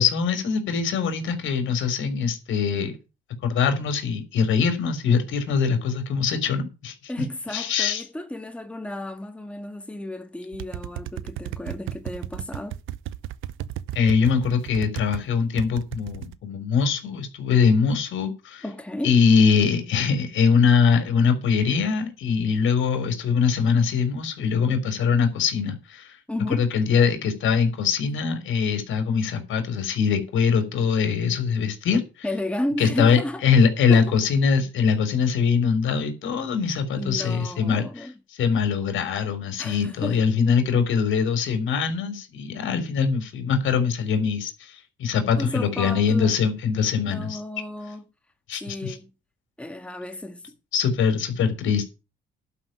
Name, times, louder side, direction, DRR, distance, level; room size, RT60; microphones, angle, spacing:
voice 1, 0.0-3.0 3.4-6.9 7.5-8.0 14.0-18.6 19.0-26.2 26.5-32.0 32.8-38.1 38.4-47.4 48.5-49.0 50.7-51.9, left 6 dB, 75° left, 3.8 m, -22 dB
voice 2, 7.1-12.8 18.6-19.2 26.3-26.7 32.2-33.4 33.9-34.1 37.0-38.1 39.6-40.3 45.4-46.4 47.0-48.0 48.6-49.1 49.6-50.5 51.7-51.8, left 1 dB, 5° left, 1.9 m, -33 dB
sound 1, 10.5-15.2 15.6-16.3, right 12 dB, 85° right, 0.8 m, -34 dB
11.5 x 5.9 x 8.9 m
cardioid pair, 90°, 20 cm